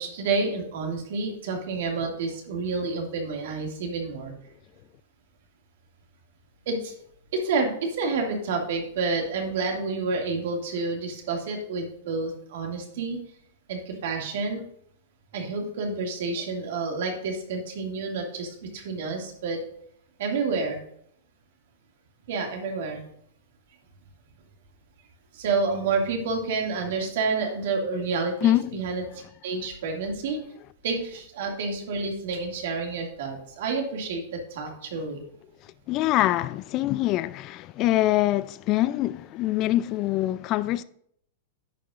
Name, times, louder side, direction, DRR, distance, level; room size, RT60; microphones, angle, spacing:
voice 1, 0.0-4.3 6.7-6.9 7.3-13.2 13.7-14.6 15.3-19.6 20.2-20.8 22.3-23.0 25.3-30.4 30.8-35.2, right 4 dB, 65° right, 2.2 m, -29 dB
voice 2, 28.4-28.8 35.6-40.8, left 15 dB, 40° left, 0.3 m, -24 dB
10.5 x 7.2 x 2.5 m
hypercardioid pair, 115°, 0 cm